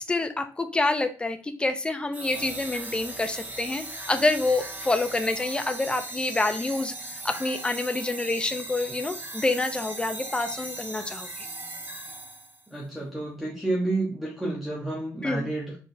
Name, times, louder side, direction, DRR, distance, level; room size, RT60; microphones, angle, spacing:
voice 1, 0.0-11.5 15.2-15.5, left 2 dB, 15° left, 8 dB, 0.5 m, -27 dB
sound 1, 2.1-12.7, right 2 dB, 25° right, 1.2 m, -38 dB
voice 2, 12.7-15.8, right 2 dB, ahead, -4 dB, 1.0 m, -30 dB
4.2 x 3.5 x 2.6 m, 0.39 s
cardioid pair, 100°, 6 cm